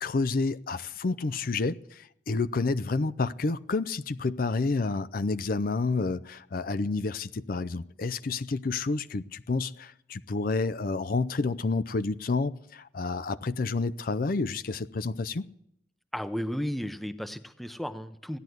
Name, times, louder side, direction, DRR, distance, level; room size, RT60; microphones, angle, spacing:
voice 1, 0.0-15.5, left 3 dB, 55° left, 0.5 m, -29 dB
voice 2, 16.1-18.4, equal, ahead, 0.7 m, -34 dB
16.0 x 10.5 x 7.9 m
head